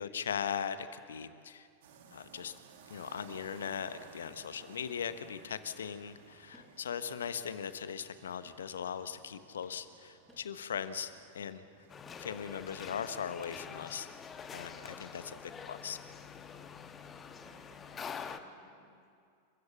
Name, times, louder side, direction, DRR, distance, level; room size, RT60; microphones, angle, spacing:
voice 1, 0.0-1.7 2.1-2.5 2.9-11.6 12.2-14.1 14.5-15.4 15.7-16.0, left 7 dB, 65° left, 12 dB, 1.0 m, -39 dB
city street noise, 1.8-17.9, right 6 dB, 55° right, 1.9 m, -60 dB
sound 1, 6.5-13.0, equal, 5° right, 6.9 m, -67 dB
sound 2, 11.9-18.4, left 6 dB, 20° left, 1.2 m, -46 dB
voice 2, 15.1-15.6 17.4-19.1, right 3 dB, 40° right, 3 dB, 3.0 m, -62 dB
28.5 x 15.0 x 7.3 m, 2.4 s
figure-of-eight pair, 90°, 0 cm